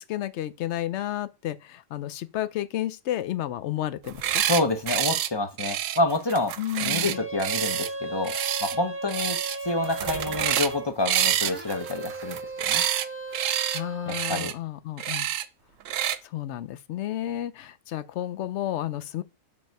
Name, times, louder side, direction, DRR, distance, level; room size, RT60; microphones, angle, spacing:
voice 1, 0.0-4.4 6.6-7.2 13.7-15.3 16.0-19.2, left 13 dB, 65° left, 0.8 m, -32 dB
sound 1, 4.0-4.6 4.9-5.3 5.6-7.9 8.2-8.8 9.1-9.6 9.8-10.7 11.1-13.1 13.3-13.8 14.1-14.5 15.0-15.4 15.9-16.2, right 11 dB, 80° right, 0.9 m, -27 dB
voice 2, 4.5-6.5 6.8-8.3 8.6-9.4 9.6-12.8 14.1-14.5, left 2 dB, 30° left, 0.5 m, -28 dB
sound 2, 6.9-10.9 11.4-14.5, right 2 dB, 10° right, 0.8 m, -36 dB
5.3 x 5.3 x 4.6 m
omnidirectional pair, 1.4 m